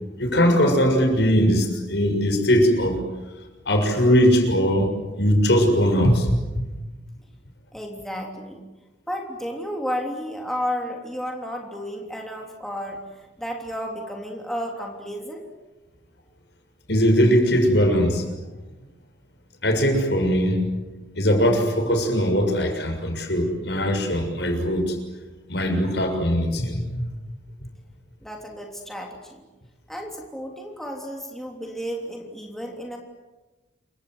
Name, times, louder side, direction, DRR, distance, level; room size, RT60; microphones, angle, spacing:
voice 1, 0.2-3.0 3.6-6.6 16.9-18.3 19.6-20.6 21.1-25.0 25.5-27.0, equal, 70° left, 4 dB, 6.7 m, -20 dB
voice 2, 7.7-8.6 9.1-15.4 28.2-29.4 29.9-33.0, equal, ahead, 0 dB, 3.2 m, -32 dB
28.5 x 24.5 x 8.1 m, 1.1 s
head